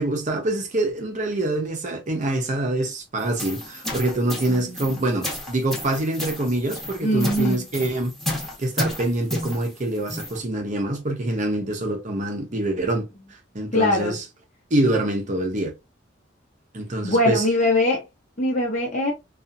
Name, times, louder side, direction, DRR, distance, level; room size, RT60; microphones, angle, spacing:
voice 1, 0.0-8.1 8.6-13.1 13.5-14.2 14.7-15.7 16.7-17.4, right 1 dB, 40° right, 0.7 m, -25 dB
sound 1, 3.2-10.4, left 1 dB, ahead, 1.0 m, -32 dB
voice 2, 4.5-4.9 7.0-7.6 11.6-11.7 13.7-14.2 17.0-18.0 18.4-19.1, left 1 dB, 40° left, 0.9 m, -22 dB
2.7 x 2.4 x 2.5 m
head